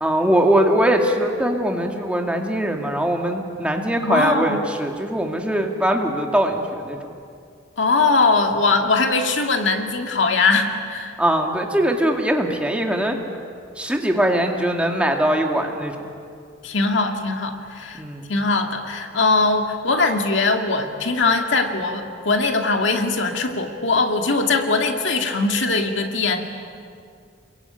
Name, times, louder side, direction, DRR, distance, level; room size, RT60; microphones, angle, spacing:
voice 1, 0.0-7.0 11.2-13.2 13.8-15.9 18.0-18.3, right 1 dB, 5° right, 2 dB, 2.2 m, -21 dB
voice 2, 4.0-4.6 7.8-11.2 16.6-18.0 18.3-26.4, left 3 dB, 65° left, 4 dB, 2.3 m, -21 dB
28.5 x 22.0 x 9.2 m, 2.3 s
head